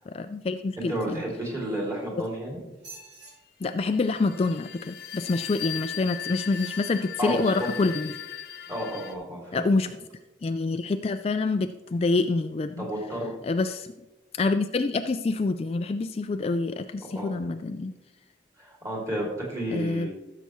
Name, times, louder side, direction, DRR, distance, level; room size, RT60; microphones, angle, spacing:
voice 1, 0.1-1.2 3.6-8.1 9.5-9.9 10.4-12.9 13.4-13.9 14.4-17.9 19.7-20.1, left 3 dB, 35° left, 8 dB, 0.3 m, -27 dB
voice 2, 0.8-2.6 7.2-7.7 8.7-9.6 12.8-13.3 17.1-17.4 18.6-20.1, right 1 dB, 20° right, -2 dB, 2.7 m, -31 dB
sound 1, 1.6-2.3 2.7-3.3 5.2-5.6 6.4-6.9 7.5-7.6, right 3 dB, 85° right, 3.4 m, -49 dB
sound 2, 3.8-9.1, left 11 dB, 55° left, 1.0 m, -38 dB
15.0 x 6.8 x 3.1 m, 1.0 s
head